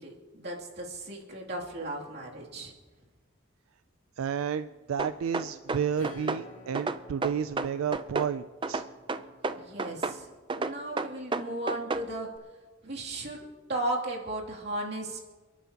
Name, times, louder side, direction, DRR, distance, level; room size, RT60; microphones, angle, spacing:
voice 1, 0.0-2.7 9.5-10.3 10.6-12.3 12.8-15.3, right 1 dB, 55° right, -3 dB, 2.7 m, -35 dB
voice 2, 4.2-8.8, right 7 dB, 85° right, 12 dB, 0.4 m, -31 dB
sound 1, 5.0-6.4 6.7-8.3 8.6-10.2 10.5-12.1, right 3 dB, 25° right, 0.4 m, -31 dB
Acoustic guitar / Strum, 6.0-10.2, left 1 dB, 85° left, 2.6 m, -52 dB
28.5 x 11.0 x 2.9 m, 1.3 s
head